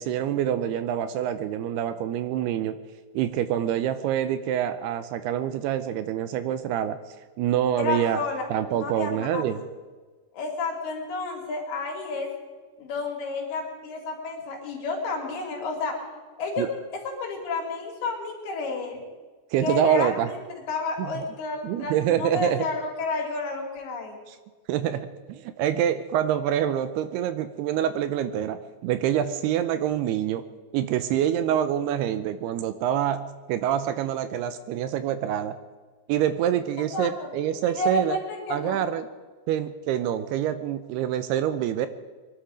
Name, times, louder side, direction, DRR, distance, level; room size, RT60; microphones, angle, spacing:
voice 1, 0.0-2.8 3.1-7.0 7.4-8.2 8.5-9.6 16.6-16.7 19.5-20.3 21.0-21.2 21.6-22.7 24.3-24.4 24.7-30.4 30.7-33.2 33.5-35.6 36.1-38.2 38.5-39.1 39.5-41.9, right 10 dB, 80° right, 11 dB, 2.5 m, -26 dB
voice 2, 7.8-8.4 8.7-9.6 10.3-12.3 12.8-16.0 16.4-19.0 19.6-20.4 20.7-24.2 36.9-37.3 37.8-38.8, left 3 dB, 65° left, 0 dB, 4.7 m, -31 dB
23.5 x 12.0 x 5.0 m, 1.4 s
omnidirectional pair, 4.9 m